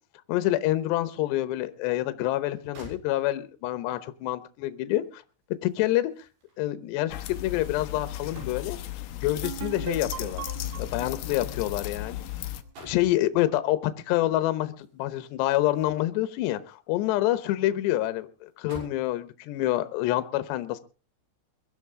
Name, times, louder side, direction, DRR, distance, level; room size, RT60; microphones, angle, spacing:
voice 1, 0.3-5.2 5.6-6.3 6.6-8.8 9.2-10.4 10.8-12.3 12.8-20.8, left 15 dB, 75° left, 12 dB, 2.9 m, -27 dB
sound 1, 2.4-2.5 2.7-3.6 5.0-9.0 10.1-12.2 12.5-13.2 14.7-16.3 16.7-17.6 18.0-18.1 18.5-19.1 19.8-20.0, right 2 dB, 55° right, 8.6 m, -51 dB
sound 2, 7.1-12.6, left 13 dB, 90° left, 1.9 m, -35 dB
sound 3, 9.4-13.0, right 13 dB, 80° right, 2.3 m, -41 dB
22.5 x 12.5 x 3.7 m, 0.35 s
omnidirectional pair, 5.6 m